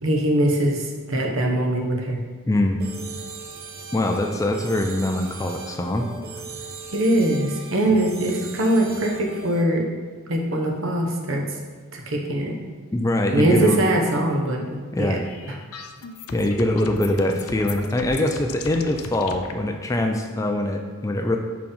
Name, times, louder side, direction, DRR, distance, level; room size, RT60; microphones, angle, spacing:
voice 1, 0.0-2.2 6.9-9.9 10.3-11.6 11.9-12.6 13.3-15.2 15.5-15.6, right 1 dB, 60° right, 1 dB, 1.0 m, -22 dB
voice 2, 2.5-2.8 3.9-6.1 12.9-13.8 14.9-15.2 16.3-21.4, left 1 dB, 15° left, 3 dB, 0.4 m, -23 dB
sound 1, 2.8-9.6, right 4 dB, 45° right, 0.5 m, -38 dB
sound 2, 15.2-19.6, left 5 dB, 80° left, 0.5 m, -38 dB
5.1 x 4.8 x 5.4 m, 1.5 s
head